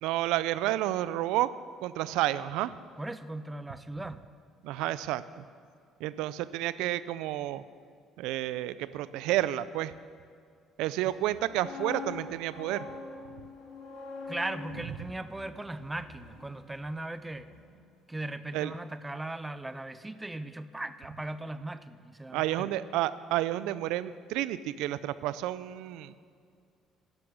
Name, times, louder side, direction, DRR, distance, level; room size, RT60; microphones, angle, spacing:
voice 1, 0.0-1.5 1.8-2.7 4.6-5.4 6.0-7.6 8.2-9.9 10.8-12.9 18.5-18.7 22.3-26.1, right 14 dB, 90° right, 16 dB, 0.4 m, -30 dB
voice 2, 3.0-4.2 14.3-17.6 18.1-22.7, right 2 dB, 10° right, 12 dB, 0.4 m, -38 dB
sound 1, 11.2-17.2 17.5-17.7, left 4 dB, 90° left, 4.0 m, -44 dB
11.5 x 10.5 x 6.4 m, 2.2 s
cardioid pair, 160°, 0 cm